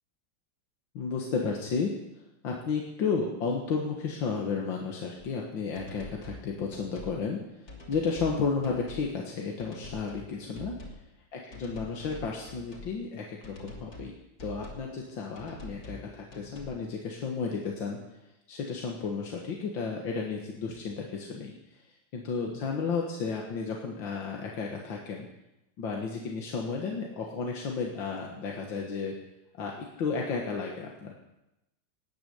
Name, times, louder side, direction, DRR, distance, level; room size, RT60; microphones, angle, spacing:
voice 1, 0.9-1.9 2.4-10.8 11.3-14.1 14.4-18.0 18.5-21.5 22.1-25.3 25.8-29.1 29.6-31.1, left 5 dB, 80° left, 0 dB, 2.3 m, -33 dB
sound 1, 5.8-6.4 6.7-7.2 7.7-8.4 8.6-9.1 9.6-10.3 10.5-11.0 11.5-12.9 13.4-14.1 14.4-14.9 15.4-16.0 16.3-16.8, left 1 dB, 50° left, 3.4 m, -45 dB
18.5 x 9.8 x 7.1 m, 0.92 s
omnidirectional pair, 2.1 m